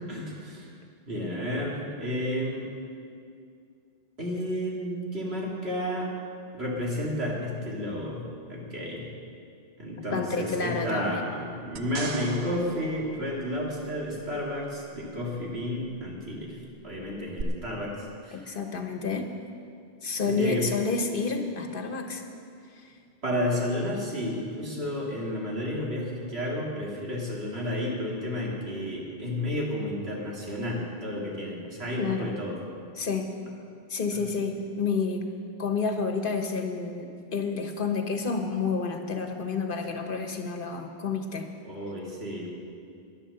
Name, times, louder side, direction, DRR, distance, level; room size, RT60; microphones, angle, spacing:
voice 1, 0.1-0.7 1.1-2.7 4.2-6.1 6.5-9.1 9.8-16.6 16.8-18.0 18.2-18.6 20.2-20.7 23.2-32.6 41.6-42.5, left 1 dB, 75° right, -4 dB, 2.7 m, -31 dB
voice 2, 10.1-11.2 18.5-19.3 20.0-22.2 22.8-22.9 32.0-32.3 33.0-33.3 33.9-35.3 35.6-41.5, left 4 dB, 55° left, 5 dB, 1.3 m, -29 dB
sound 1, 11.8-14.3 17.4-17.5, right 6 dB, 90° right, 1.0 m, -39 dB
12.0 x 11.0 x 6.6 m, 2.4 s
omnidirectional pair, 1.1 m